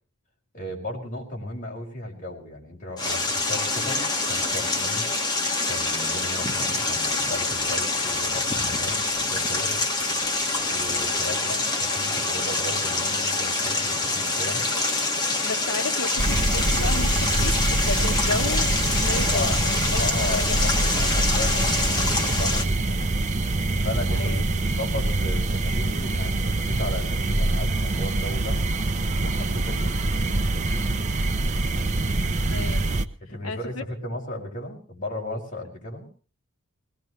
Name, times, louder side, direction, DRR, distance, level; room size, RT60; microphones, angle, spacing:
voice 1, 0.5-5.1 5.7-9.0 9.3-9.9 10.6-14.7 19.3-19.6 19.9-23.1 23.7-28.6 29.2-30.6 33.2-36.1, left 1 dB, 40° left, -2 dB, 5.5 m, -35 dB
sound 1, 3.0-22.6, left 3 dB, 20° left, 1.7 m, -26 dB
voice 2, 15.4-18.7 19.0-20.0 20.4-20.7 24.1-24.4 32.5-32.9 33.4-33.8, left 3 dB, 80° left, 4 dB, 1.1 m, -32 dB
sound 2, 16.2-33.1, right 2 dB, 35° right, 0.7 m, -25 dB
22.5 x 19.0 x 3.1 m, 0.37 s
head